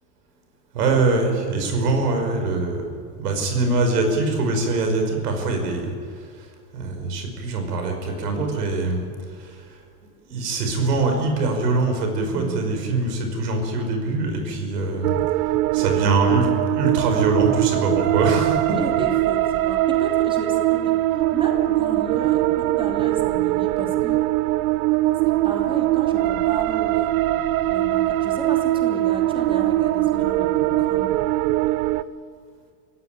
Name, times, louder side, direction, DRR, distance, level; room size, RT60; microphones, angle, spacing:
voice 1, 0.7-2.9 3.2-5.9 6.7-9.1 9.4-9.6 10.3-15.1 15.7-16.5 16.7-18.8, right 3 dB, 80° right, 4 dB, 5.3 m, -23 dB
voice 2, 12.2-12.8 15.1-15.2 15.7-15.9 16.9-17.0 18.7-24.2 25.2-31.1, right 2 dB, 10° right, 1 dB, 3.0 m, -34 dB
sound 1, 15.0-32.0, right 15 dB, 60° right, 1.0 m, -21 dB
24.0 x 15.5 x 9.2 m, 2.2 s
hypercardioid pair, 115°, 47 cm